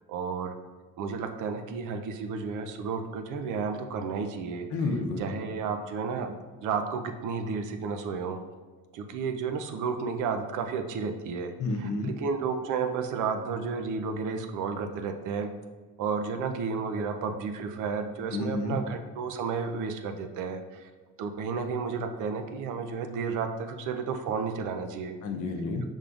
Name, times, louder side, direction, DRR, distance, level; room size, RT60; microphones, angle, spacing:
voice 1, 0.1-0.5 1.0-4.7 5.2-8.4 8.9-15.5 16.0-20.9 21.2-25.2, right 5 dB, 80° right, 6 dB, 0.5 m, -32 dB
voice 2, 4.7-5.3 11.6-12.1 18.3-18.8 25.2-25.8, left 3 dB, 75° left, 3 dB, 0.7 m, -30 dB
5.1 x 3.6 x 2.4 m, 1.4 s
cardioid pair, 90°, 30 cm